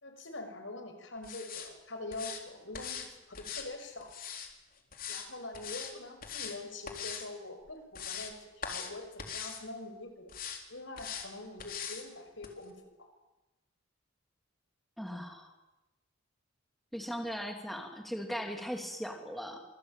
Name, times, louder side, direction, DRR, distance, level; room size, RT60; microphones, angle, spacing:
voice 1, 0.0-4.1 5.1-10.3 10.7-12.8, left 2 dB, 65° left, 6 dB, 5.8 m, -44 dB
sound 1, 1.2-1.7 2.1-2.4 2.7-3.1 3.3-4.5 4.9-5.3 5.5-5.9 6.2-6.6 6.9-7.3 7.7-8.3 8.6-8.9 9.2-9.6 10.3-10.6 11.0-11.3 11.6-12.0 12.4-12.5, left 7 dB, 45° left, 3.8 m, -41 dB
voice 2, 15.0-15.5 16.9-19.6, equal, ahead, 3 dB, 2.8 m, -38 dB
26.5 x 22.0 x 9.1 m, 1.0 s
head